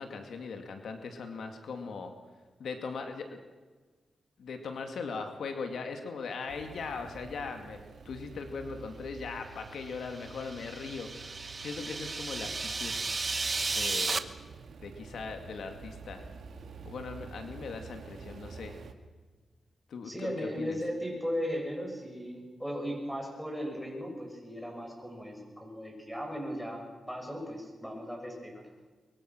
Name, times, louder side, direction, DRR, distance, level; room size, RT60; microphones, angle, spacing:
voice 1, 0.0-2.1 2.6-3.4 4.4-7.8 8.0-13.0 13.7-14.2 14.8-16.2 16.8-18.7 19.9-20.3 20.6-20.8, left 4 dB, 80° left, 5 dB, 2.3 m, -39 dB
sound 1, 6.5-18.9, right 5 dB, 75° right, 1.9 m, -48 dB
sound 2, 10.0-14.2, right 3 dB, 35° right, 1.2 m, -34 dB
voice 2, 20.0-28.6, equal, ahead, 1 dB, 7.4 m, -37 dB
23.5 x 23.0 x 6.3 m, 1.3 s
cardioid pair, 100°, 0 cm